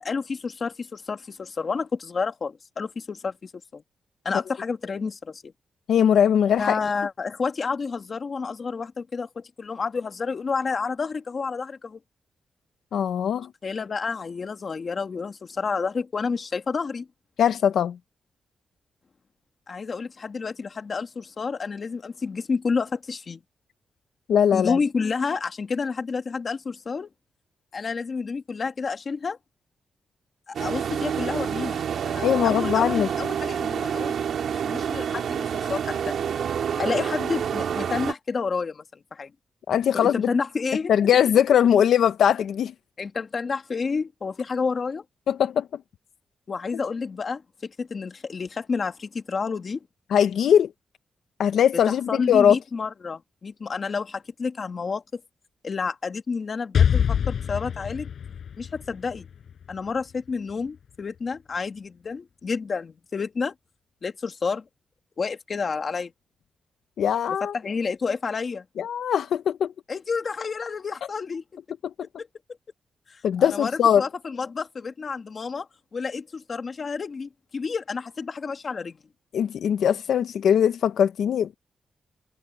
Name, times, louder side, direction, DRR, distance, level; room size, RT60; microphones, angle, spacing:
voice 1, 0.0-3.8 4.2-5.5 6.6-12.0 13.6-17.1 19.7-23.4 24.5-27.1 27.7-29.4 30.5-34.1 34.5-36.1 36.8-39.3 39.9-40.9 43.0-45.0 46.5-49.9 51.9-55.2 55.6-58.1 58.6-59.3 59.7-63.5 64.0-64.6 65.2-66.1 67.4-68.7 69.9-71.4 72.2-72.3 73.1-79.0, left 5 dB, 40° left, 2.1 m, -30 dB
voice 2, 5.9-6.8 12.9-13.5 17.4-18.0 24.3-24.8 32.2-33.1 39.7-40.3 40.9-42.7 45.3-45.7 50.1-50.7 51.4-52.6 67.0-67.5 68.8-69.7 73.2-74.0 79.3-81.6, left 9 dB, 80° left, 0.7 m, -20 dB
sound 1, 30.5-38.1, right 8 dB, 70° right, 3.3 m, -28 dB
Explosion, 56.7-60.5, left 8 dB, 60° left, 7.0 m, -25 dB
wide cardioid pair, 150°, 0 cm